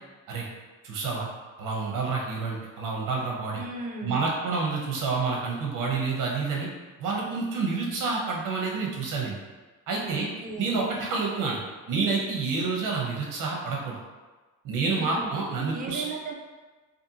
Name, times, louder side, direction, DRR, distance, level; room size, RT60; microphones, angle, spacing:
voice 1, 0.8-1.3 1.6-3.6 4.0-6.7 7.0-9.4 9.9-10.3 10.6-11.6 11.9-14.0 14.6-16.0, right 4 dB, 75° right, -2 dB, 0.7 m, -28 dB
voice 2, 3.5-4.2 10.1-10.8 15.0-15.3 15.7-16.3, right 3 dB, 25° right, 0 dB, 0.4 m, -36 dB
2.6 x 2.5 x 2.7 m, 1.3 s
cardioid pair, 110°, 32 cm